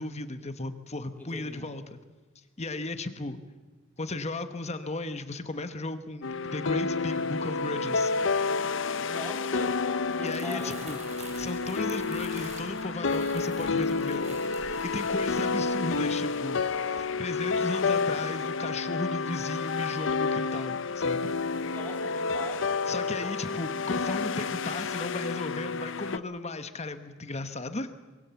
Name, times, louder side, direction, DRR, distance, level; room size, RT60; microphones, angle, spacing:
voice 1, 0.0-2.0 2.6-3.4 4.0-8.1 10.2-16.6 16.9-21.3 22.9-27.9, left 2 dB, 35° left, 9 dB, 1.2 m, -35 dB
voice 2, 1.2-1.7 9.1-9.8 10.1-10.9 21.4-22.8 23.2-23.6, left 1 dB, 10° left, 0 dB, 3.4 m, -42 dB
sound 1, 6.2-26.2, left 4 dB, 70° left, 0.8 m, -30 dB
Crumpling crinkling, 10.0-16.4 16.7-17.0, right 2 dB, 35° right, 5.5 m, -48 dB
24.5 x 21.5 x 7.1 m, 1.2 s
head